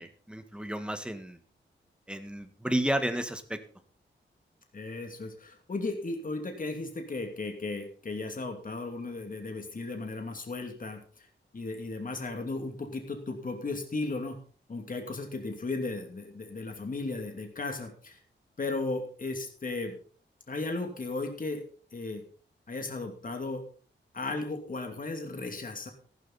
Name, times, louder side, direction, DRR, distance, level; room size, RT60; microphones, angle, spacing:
voice 1, 0.0-1.4 2.1-3.6, right 1 dB, 5° right, 8 dB, 1.7 m, -32 dB
voice 2, 4.7-11.3 11.5-14.4 14.7-18.2 18.6-20.0 20.5-21.6 21.9-22.2 22.7-23.6 24.1-25.9, left 3 dB, 45° left, 4 dB, 2.7 m, -35 dB
14.5 x 13.0 x 4.2 m, 0.42 s
wide cardioid pair, 100°, 20 cm